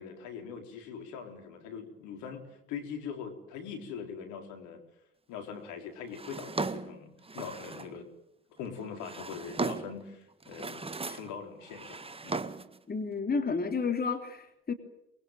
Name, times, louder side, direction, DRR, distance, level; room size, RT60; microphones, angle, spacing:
voice 1, 0.0-4.8 5.3-8.1 8.6-12.5, left 6 dB, 65° left, 4 dB, 4.4 m, -42 dB
Drawer open or close, 6.1-8.0 8.8-10.0 10.4-11.3 11.6-12.8, right 3 dB, 15° right, 1.6 m, -37 dB
voice 2, 12.9-14.7, left 5 dB, 30° left, 6 dB, 3.2 m, -31 dB
24.5 x 22.5 x 9.2 m, 0.83 s
hypercardioid pair, 55°, 32 cm